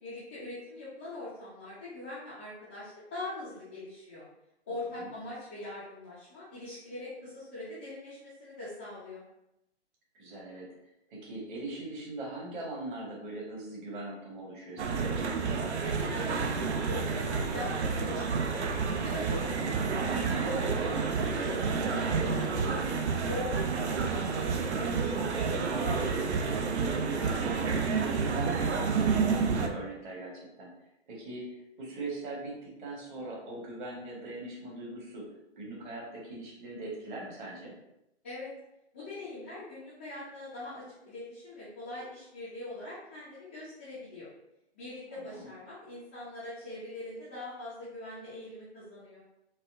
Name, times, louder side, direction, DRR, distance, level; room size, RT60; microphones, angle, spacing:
voice 1, 0.0-4.3 4.7-9.2 15.8-18.7 19.0-22.8 23.3-27.8 38.2-38.5 38.9-44.3 44.8-49.2, left 2 dB, 10° left, -13 dB, 0.3 m, -42 dB
voice 2, 10.1-10.7 11.1-15.2 28.9-30.7 31.1-35.2 35.6-37.7 45.1-45.5, right 2 dB, 45° right, -3 dB, 1.4 m, -41 dB
sound 1, 14.8-29.7, right 5 dB, 70° right, 0.6 m, -29 dB
4.1 x 2.2 x 2.5 m, 0.85 s
hypercardioid pair, 130°, 35 cm